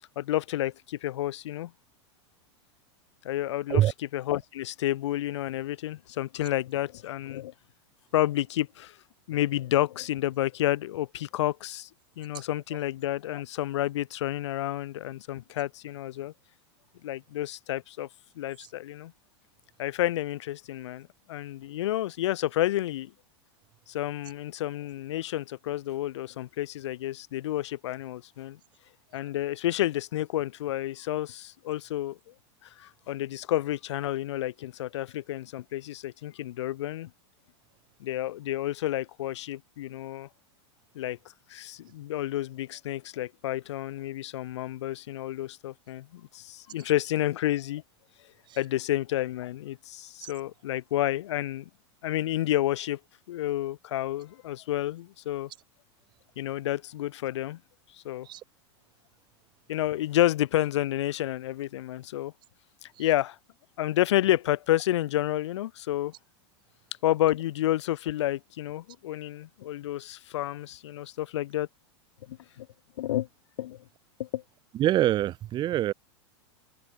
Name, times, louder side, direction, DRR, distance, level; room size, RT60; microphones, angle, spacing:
voice 1, 0.1-1.7 3.2-3.8 4.1-7.5 8.1-9.0 9.3-11.9 12.2-16.3 17.0-18.1 18.3-19.1 19.8-23.1 23.9-28.6 29.1-32.2 32.6-37.1 38.0-40.3 40.9-41.2 41.5-47.8 48.6-51.7 52.0-53.0 53.3-55.5 56.4-57.6 57.9-58.3 59.7-62.3 62.8-63.4 63.8-66.1 67.0-71.7 72.2-72.7 73.0-73.3 73.6-73.8 74.2-74.4, left 14 dB, 80° left, 4.8 m, -30 dB
voice 2, 74.7-75.9, right 13 dB, 30° right, 4.4 m, -24 dB
supercardioid pair, 145°, 15 cm